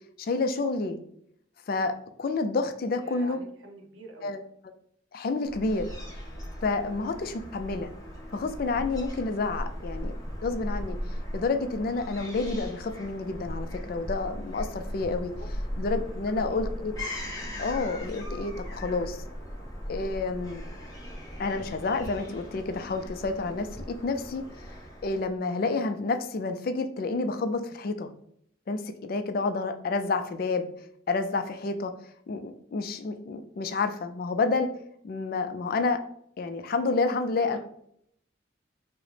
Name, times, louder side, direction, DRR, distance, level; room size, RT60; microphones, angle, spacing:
voice 1, 0.2-1.0 1.7-3.4 4.2-4.4 5.1-5.9 6.6-7.9 8.3-10.1 10.4-15.3 15.8-16.9 17.6-19.2 19.9-20.6 21.4-24.4 25.0-28.1 28.7-30.6 31.1-31.9 32.3-34.7 35.0-36.0 36.4-37.6, left 3 dB, 50° left, 8 dB, 0.3 m, -29 dB
voice 2, 2.9-4.3 15.4-15.5 16.2-16.6 37.4-37.6, right 1 dB, 80° right, 2 dB, 0.7 m, -44 dB
Fowl / Gull seagull, 5.5-25.3, equal, 20° left, 1.0 m, -38 dB
4.8 x 2.0 x 3.2 m, 0.69 s
head